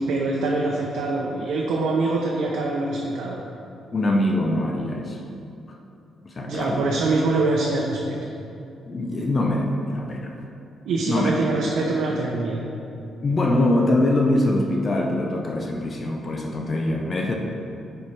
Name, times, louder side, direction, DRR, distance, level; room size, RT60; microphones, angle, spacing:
voice 1, 0.1-3.4 6.4-8.2 10.8-12.7, right 3 dB, 90° right, -2 dB, 0.7 m, -24 dB
voice 2, 3.9-5.2 5.7-5.8 6.2-6.9 8.9-10.4 11.1-11.4 13.2-17.4, left 1 dB, 25° left, 2 dB, 0.5 m, -23 dB
9.5 x 4.4 x 3.3 m, 2.6 s
cardioid pair, 175°, 0 cm